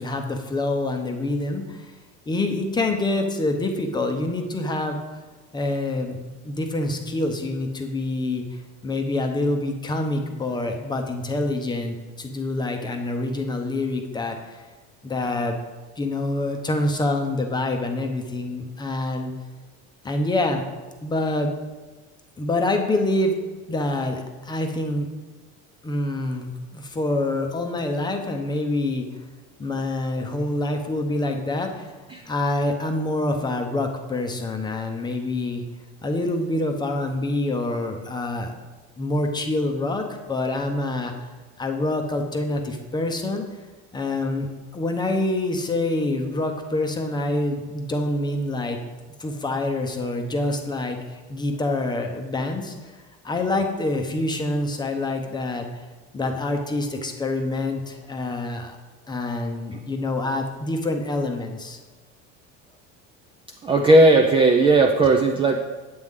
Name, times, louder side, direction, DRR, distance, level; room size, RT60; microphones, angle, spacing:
voice 1, 0.0-1.9 2.3-5.0 5.5-6.2 6.4-14.6 15.0-15.6 16.0-19.3 20.0-20.6 21.0-21.5 22.4-23.4 23.7-25.1 25.8-29.1 29.6-32.0 32.3-35.6 36.0-38.6 39.0-41.1 41.6-43.4 43.9-44.5 44.7-48.8 49.2-53.0 53.2-55.8 56.1-58.8 59.1-61.8, left 2 dB, 15° left, 4 dB, 0.7 m, -26 dB
voice 2, 63.6-65.6, right 2 dB, 15° right, 2 dB, 0.4 m, -16 dB
8.7 x 8.0 x 3.6 m, 1.2 s
cardioid pair, 155°, 32 cm